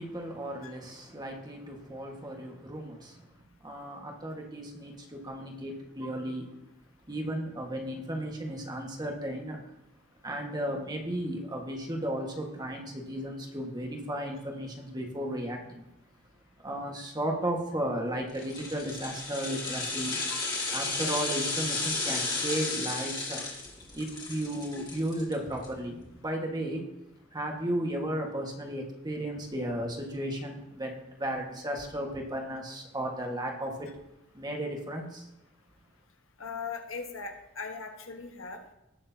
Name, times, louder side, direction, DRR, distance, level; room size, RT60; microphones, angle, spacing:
voice 1, 0.0-3.3 3.6-6.5 7.1-9.6 10.2-15.8 16.6-23.4 23.9-26.8 27.3-33.9 34.3-35.3, right 1 dB, 20° right, 1 dB, 1.6 m, -34 dB
sound 1, 18.3-25.7 26.0-26.1, left 3 dB, 20° left, 2.4 m, -33 dB
voice 2, 36.4-38.7, left 5 dB, 80° left, 4 dB, 1.3 m, -39 dB
18.5 x 6.8 x 2.8 m, 0.93 s
head